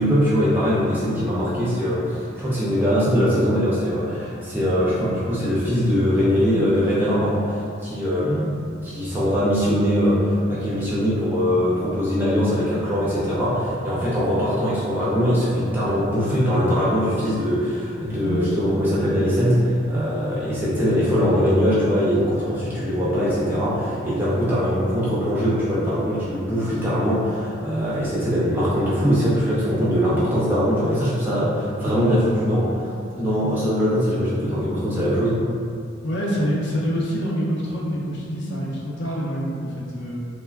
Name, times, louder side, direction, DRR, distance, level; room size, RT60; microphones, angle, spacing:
voice 1, 0.0-32.9 33.1-35.4, equal, 10° right, -9 dB, 0.3 m, -21 dB
voice 2, 18.2-18.5 36.0-40.2, equal, 55° left, -4 dB, 0.5 m, -26 dB
3.2 x 2.2 x 2.2 m, 2.4 s
head